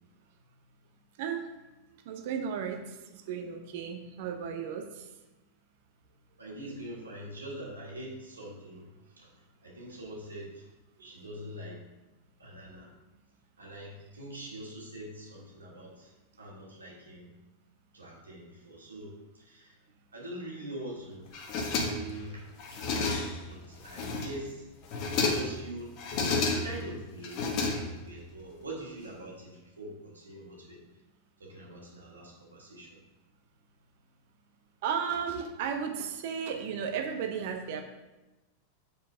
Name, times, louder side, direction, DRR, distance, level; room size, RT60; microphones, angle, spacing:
voice 1, 2.1-5.1 28.5-28.6 34.8-37.8, right 7 dB, 50° right, 4 dB, 0.8 m, -34 dB
voice 2, 6.4-10.7 11.0-11.8 12.4-12.9 13.6-17.3 17.9-19.7 20.1-21.4 21.7-24.7 25.2-25.9 26.5-30.8 31.4-33.0, right 1 dB, 75° right, -4 dB, 2.2 m, -44 dB
sound 1, 21.3-22.2 22.6-23.5 23.8-24.5 24.8-25.6 26.0-26.9 27.2-28.2, left 3 dB, 40° left, 1.0 m, -31 dB
5.4 x 4.6 x 6.2 m, 1.1 s
figure-of-eight pair, 90°, 0 cm